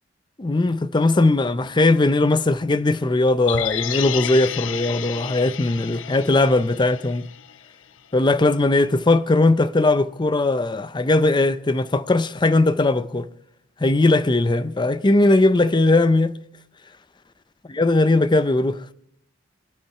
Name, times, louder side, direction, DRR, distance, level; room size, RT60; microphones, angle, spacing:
voice 1, 0.4-7.3 8.1-13.3 13.8-16.4 17.7-18.9, left 2 dB, 25° left, 0.6 m, -19 dB
sound 1, 3.5-7.7 8.0-8.1, left 10 dB, 80° left, 0.6 m, -31 dB
23.0 x 8.5 x 4.8 m
head